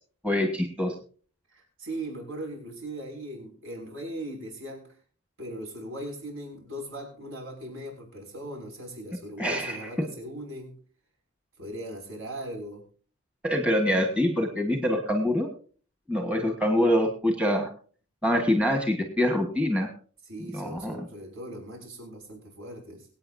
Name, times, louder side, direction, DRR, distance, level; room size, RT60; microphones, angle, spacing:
voice 1, 0.2-0.9 9.4-9.9 13.4-15.5 16.1-17.7 18.2-19.9 20.5-21.1, equal, 5° right, 3 dB, 1.5 m, -25 dB
voice 2, 1.5-4.8 5.4-10.7 11.6-12.8 20.3-23.1, right 1 dB, 65° right, 1 dB, 6.3 m, -39 dB
23.5 x 9.0 x 2.7 m, 0.42 s
head